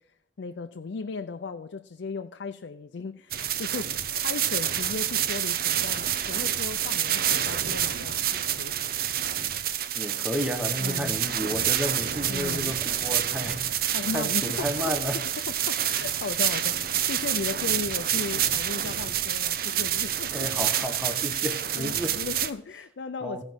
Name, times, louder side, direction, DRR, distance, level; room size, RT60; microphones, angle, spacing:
voice 1, 0.4-3.9 4.1-8.7 10.8-11.2 12.3-12.8 13.9-14.9 15.5-20.7 21.2-23.4, left 4 dB, 75° left, 0.4 m, -36 dB
sound 1, 3.3-22.5, right 10 dB, 50° right, 0.6 m, -28 dB
voice 2, 9.9-13.6 14.1-15.2 20.3-22.2 23.2-23.4, equal, 5° right, 0.9 m, -32 dB
15.0 x 5.3 x 6.2 m
head